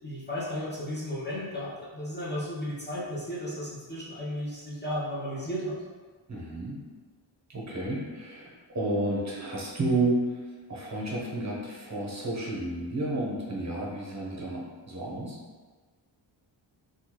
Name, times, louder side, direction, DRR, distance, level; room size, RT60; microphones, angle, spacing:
voice 1, 0.0-5.8, equal, 25° left, -6 dB, 0.6 m, -34 dB
voice 2, 6.3-6.8 7.5-10.4 10.7-15.4, right 2 dB, 35° right, -4 dB, 0.7 m, -31 dB
3.4 x 2.3 x 2.9 m, 1.4 s
wide cardioid pair, 90°, 47 cm